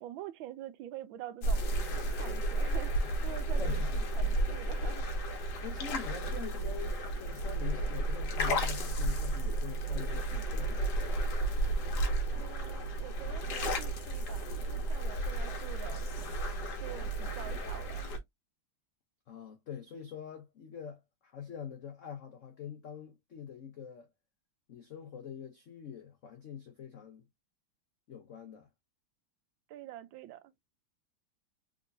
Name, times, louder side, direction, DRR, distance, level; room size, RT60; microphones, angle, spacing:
voice 1, 0.0-5.1 12.3-16.0 16.8-18.1 29.7-30.5, right 12 dB, 80° right, 1.3 m, -46 dB
sound 1, 1.4-18.2, right 1 dB, 60° left, 1.3 m, -32 dB
voice 2, 3.6-3.9 5.6-11.2 19.3-24.1 24.7-27.3 28.1-28.7, left 8 dB, 80° left, 0.6 m, -44 dB
3.6 x 3.0 x 2.4 m
omnidirectional pair, 2.3 m